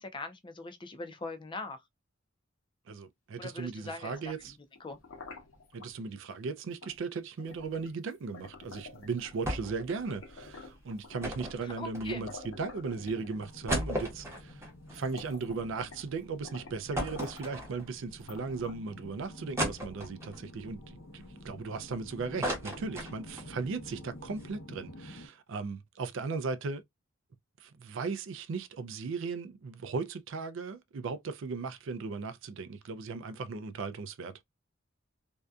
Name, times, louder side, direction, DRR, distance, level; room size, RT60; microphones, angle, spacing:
voice 1, 0.0-1.8 3.4-4.2 4.5-4.6 4.8-5.0 11.6-12.2, left 3 dB, 25° left, 0.4 m, -41 dB
voice 2, 2.9-4.6 5.7-14.6 14.9-26.8 27.6-34.3, right 4 dB, 65° right, 0.4 m, -37 dB
sound 1, 3.8-5.9 6.8-7.0 7.4-9.5 9.8-11.4 12.0-12.1 12.3-13.8 14.4-14.5 14.9-16.1 16.4-17.6 18.2-19.0, left 4 dB, 65° left, 0.8 m, -49 dB
sound 2, 9.4-9.9 10.2-10.3 11.2-12.5 13.0-13.1 13.4-15.9 16.3-16.4 16.9-18.1 18.6-18.7 19.6-20.4 21.0-21.9 22.2-23.5 23.9-24.0 24.2-24.5, equal, 15° right, 0.8 m, -35 dB
sound 3, 12.9-25.3, left 1 dB, 90° left, 1.0 m, -50 dB
2.6 x 2.2 x 2.3 m
head